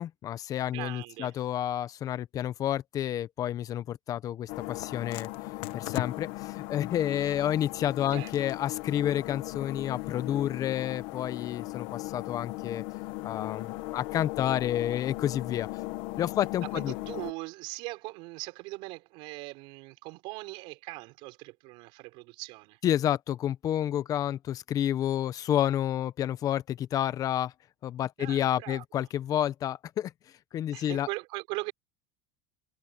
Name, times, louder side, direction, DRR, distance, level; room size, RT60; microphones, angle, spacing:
voice 1, 0.0-5.3 5.7-12.8 13.2-15.7 16.2-16.9 22.8-27.5 27.8-30.1 30.5-31.1, left 11 dB, 40° left, 1.0 m, -30 dB
voice 2, 0.7-1.3 8.1-8.3 16.7-22.8 28.2-28.8 30.7-31.7, right 24 dB, 65° right, 6.4 m, -40 dB
sound 1, 4.5-17.3, left 21 dB, 70° left, 1.5 m, -37 dB
supercardioid pair, 120°, 9 cm